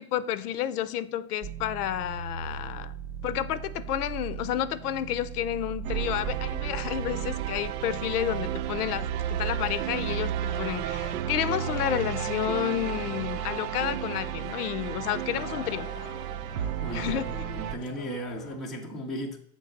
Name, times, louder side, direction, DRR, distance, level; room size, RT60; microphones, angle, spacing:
voice 1, 0.0-2.9 3.2-15.9 16.9-17.3, left 11 dB, 70° left, 0.7 m, -30 dB
sound 1, 1.4-17.0, right 7 dB, 40° right, 0.8 m, -41 dB
sound 2, 5.8-17.8, right 10 dB, 65° right, 0.5 m, -32 dB
sound 3, 10.5-18.6, left 7 dB, 25° left, 0.8 m, -46 dB
voice 2, 15.8-16.5 16.8-19.4, equal, ahead, 0.5 m, -37 dB
7.8 x 3.3 x 6.4 m
supercardioid pair, 155°, 47 cm